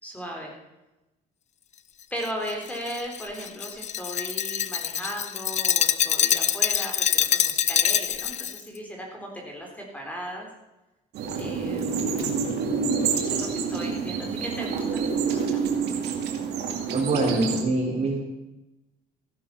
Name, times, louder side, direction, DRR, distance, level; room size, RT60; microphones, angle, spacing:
voice 1, 0.0-0.5 2.1-10.5 11.4-12.0 13.1-15.6, equal, 10° left, 0 dB, 3.6 m, -37 dB
Glass, 2.2-8.6, left 9 dB, 45° left, 0.7 m, -25 dB
sound 1, 11.1-17.6, right 5 dB, 75° right, 2.6 m, -27 dB
voice 2, 16.9-18.2, right 2 dB, 40° right, -1 dB, 4.8 m, -24 dB
15.5 x 11.0 x 5.7 m, 0.98 s
cardioid pair, 110°, 17 cm